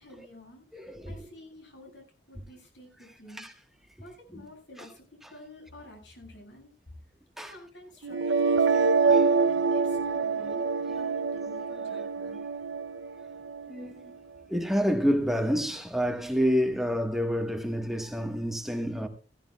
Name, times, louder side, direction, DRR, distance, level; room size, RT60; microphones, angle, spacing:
voice 1, 0.0-3.4 4.0-6.7 7.4-9.2 9.5-12.4, left 1 dB, 70° left, 7.9 m, -50 dB
voice 2, 0.7-1.1 3.3-3.5 4.8-4.9 7.4-7.5 9.1-9.3 13.7-13.9 14.5-19.1, equal, ahead, 1.4 m, -28 dB
sound 1, 8.0-14.0, right 4 dB, 75° right, 0.6 m, -26 dB
16.5 x 15.0 x 2.3 m
head